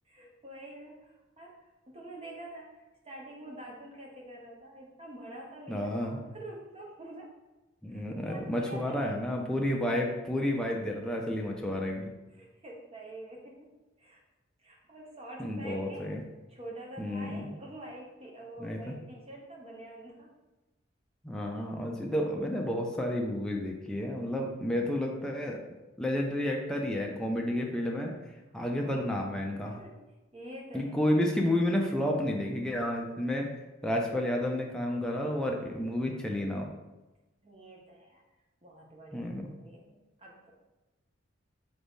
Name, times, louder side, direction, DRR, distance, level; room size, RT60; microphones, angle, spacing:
voice 1, 0.1-1.6 1.9-7.3 7.9-9.3 12.3-14.2 14.6-16.1 16.5-20.3 28.7-29.2 29.6-31.0 37.4-38.2 38.6-40.5, right 1 dB, 30° right, -1 dB, 0.8 m, -47 dB
voice 2, 5.7-6.2 7.8-12.1 15.4-16.2 17.0-17.5 18.6-18.9 21.2-25.6 26.0-28.1 28.5-29.8 30.7-33.5 33.8-36.7 39.1-39.5, left 1 dB, 5° left, -1 dB, 0.4 m, -31 dB
3.9 x 3.4 x 3.5 m, 1.1 s
head